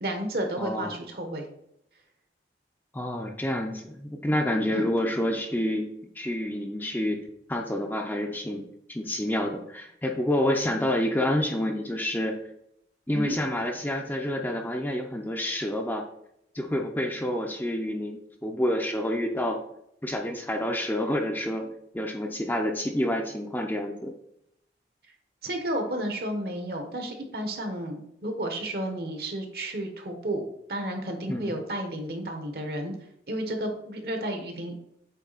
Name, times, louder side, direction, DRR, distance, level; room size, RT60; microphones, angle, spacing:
voice 1, 0.0-1.4 4.7-4.8 13.1-13.3 25.4-32.9 33.3-34.8, right 1 dB, 60° right, 4 dB, 1.2 m, -32 dB
voice 2, 0.6-1.0 2.9-5.9 6.2-7.2 7.5-12.4 13.1-16.1 16.5-19.6 20.0-21.7 21.9-24.1 31.3-31.6, left 1 dB, 10° left, 2 dB, 0.6 m, -28 dB
8.3 x 3.3 x 4.1 m, 0.75 s
head